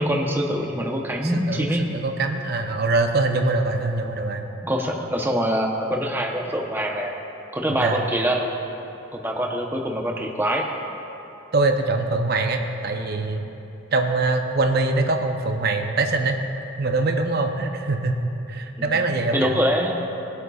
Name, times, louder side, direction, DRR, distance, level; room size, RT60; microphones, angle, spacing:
voice 1, 0.0-1.9 4.6-7.1 7.5-8.5 9.1-10.7 18.8-20.0, equal, 10° right, 0 dB, 0.8 m, -24 dB
voice 2, 1.2-1.7 1.9-4.5 7.8-8.0 11.5-13.5 13.9-16.4 16.8-19.5, right 3 dB, 50° right, 5 dB, 0.6 m, -23 dB
21.0 x 8.1 x 2.4 m, 3.0 s
head